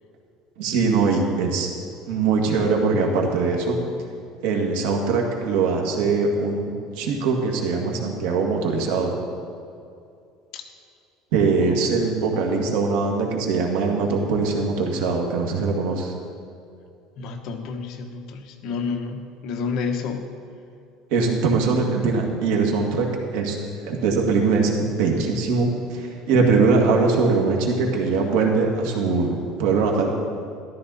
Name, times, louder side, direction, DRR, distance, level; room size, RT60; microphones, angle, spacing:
voice 1, 0.6-1.7 2.1-3.8 4.4-9.1 11.3-16.1 21.1-23.6 23.8-29.3 29.6-30.1, right 4 dB, 80° right, 1 dB, 2.1 m, -22 dB
voice 2, 17.2-20.3, left 5 dB, 50° left, 4 dB, 1.2 m, -30 dB
14.0 x 12.0 x 4.2 m, 2.5 s
cardioid pair, 160°, 0 cm